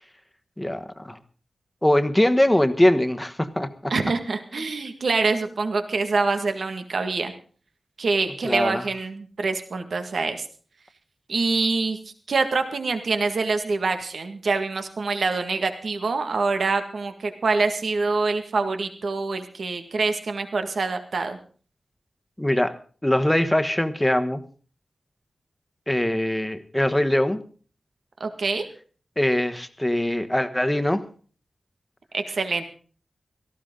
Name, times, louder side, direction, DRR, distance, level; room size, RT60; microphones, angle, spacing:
voice 1, 0.6-1.2 1.8-3.9 8.4-8.8 22.4-22.7 23.0-24.4 25.9-27.4 29.2-31.0, left 1 dB, 10° left, 9 dB, 1.2 m, -22 dB
voice 2, 3.9-7.3 8.0-10.5 11.3-12.0 12.3-21.4 28.2-28.6 32.1-32.6, right 3 dB, 80° right, 7 dB, 1.8 m, -25 dB
18.0 x 14.5 x 3.8 m, 0.41 s
wide cardioid pair, 105°, 0 cm